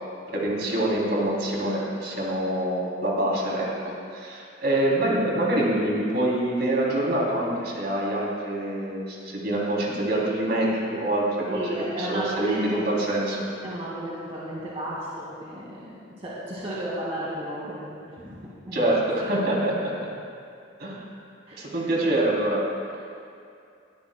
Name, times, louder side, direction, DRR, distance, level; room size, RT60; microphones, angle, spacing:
voice 1, 0.3-11.6 12.0-13.4 18.7-19.9 20.8-21.0 21.6-22.6, right 1 dB, 55° right, -4 dB, 3.1 m, -25 dB
voice 2, 11.5-12.9 13.6-18.9 19.2-19.5 21.5-21.9, equal, 30° right, -7 dB, 2.0 m, -34 dB
21.0 x 13.5 x 2.2 m, 2.5 s
head